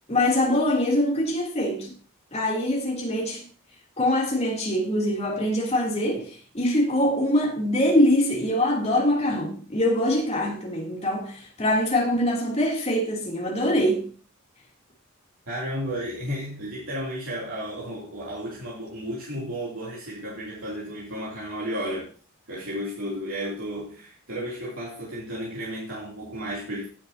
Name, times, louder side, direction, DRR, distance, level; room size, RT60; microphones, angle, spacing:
voice 1, 0.1-1.9 2.3-3.5 4.0-14.1, left 1 dB, 30° left, 3.2 m, -23 dB
voice 2, 15.5-22.1 22.5-26.9, equal, 70° right, 3.3 m, -33 dB
17.0 x 7.5 x 2.9 m
head